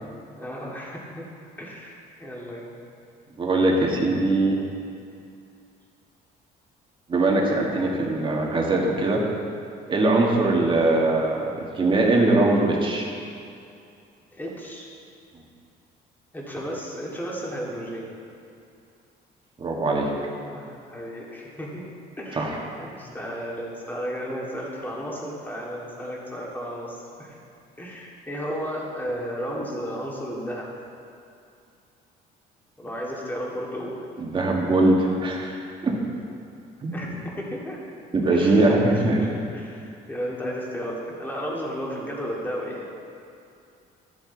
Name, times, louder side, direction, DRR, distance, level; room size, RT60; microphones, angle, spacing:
voice 1, 0.4-1.3 1.6-2.7 10.4-10.7 14.3-14.9 16.3-18.1 20.5-21.8 22.2-27.4 27.8-30.7 32.8-34.0 36.9-37.8 38.3-42.8, equal, 10° left, -4 dB, 2.1 m, -33 dB
voice 2, 3.4-4.6 7.1-9.2 9.9-13.1 19.6-20.1 22.4-22.6 34.2-35.6 35.8-36.0 36.8-37.0 38.1-39.2, right 2 dB, 30° right, -1 dB, 1.7 m, -21 dB
13.0 x 7.7 x 4.0 m, 2.5 s
cardioid pair, 110°, 17 cm